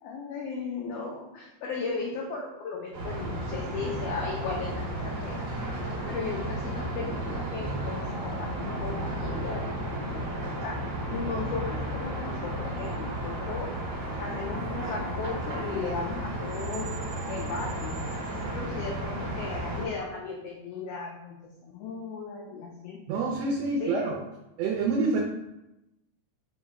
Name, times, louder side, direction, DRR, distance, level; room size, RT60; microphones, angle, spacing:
voice 1, 0.0-5.4 6.1-10.8 11.1-13.7 14.2-16.9 17.3-17.9 18.4-23.0 23.8-24.2, left 4 dB, 80° left, -1 dB, 1.4 m, -36 dB
Baltimore City Ambience at Dusk, 2.9-19.8, right 1 dB, 60° right, 1.4 m, -33 dB
voice 2, 23.1-24.1 24.6-25.2, right 4 dB, 75° right, -2 dB, 1.6 m, -27 dB
4.6 x 2.1 x 4.6 m, 0.92 s
omnidirectional pair, 3.3 m